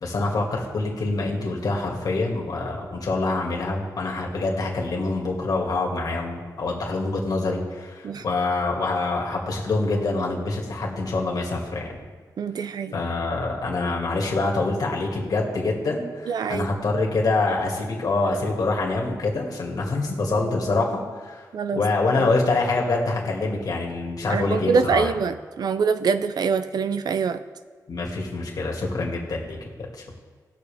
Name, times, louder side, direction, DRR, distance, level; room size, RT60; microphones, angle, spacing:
voice 1, 0.0-12.1 12.9-21.4 21.7-25.1 27.9-29.6 29.9-30.0, left 3 dB, 60° left, -1 dB, 2.1 m, -25 dB
voice 2, 12.4-13.0 16.3-16.7 21.5-21.8 22.2-22.3 24.3-27.4, right 5 dB, 70° right, 11 dB, 0.5 m, -24 dB
19.5 x 6.5 x 3.5 m, 1.5 s
wide cardioid pair, 140°, 7 cm